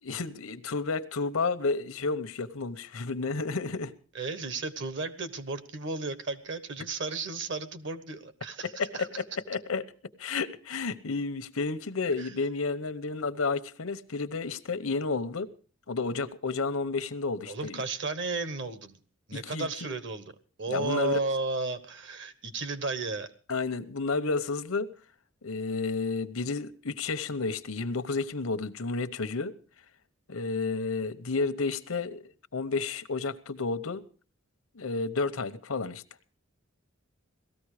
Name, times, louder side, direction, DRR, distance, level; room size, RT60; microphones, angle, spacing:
voice 1, 0.0-3.9 8.8-9.8 10.2-15.5 15.9-17.8 19.3-19.7 20.7-21.2 23.5-24.9 25.4-29.5 30.3-34.0 34.7-36.0, left 4 dB, 85° left, 1.0 m, -31 dB
voice 2, 4.1-9.2 12.2-12.3 17.5-19.0 19.3-20.3 20.6-23.3, right 3 dB, 60° right, 1.3 m, -33 dB
17.5 x 14.0 x 4.9 m
head